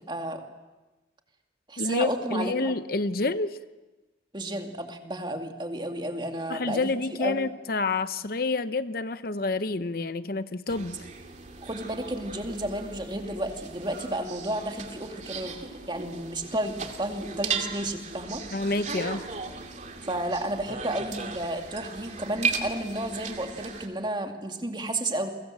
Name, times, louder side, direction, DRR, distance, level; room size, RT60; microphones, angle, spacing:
voice 1, 0.1-0.4 1.7-2.7 4.3-7.4 11.6-15.6 15.9-18.4 20.0-25.3, right 1 dB, 25° right, 4 dB, 2.4 m, -32 dB
voice 2, 1.8-3.6 6.5-11.0 18.5-19.2, left 3 dB, 55° left, 12 dB, 0.8 m, -28 dB
sound 1, 10.7-23.9, right 4 dB, 40° right, 2.5 m, -36 dB
29.5 x 23.0 x 7.7 m, 1.1 s
head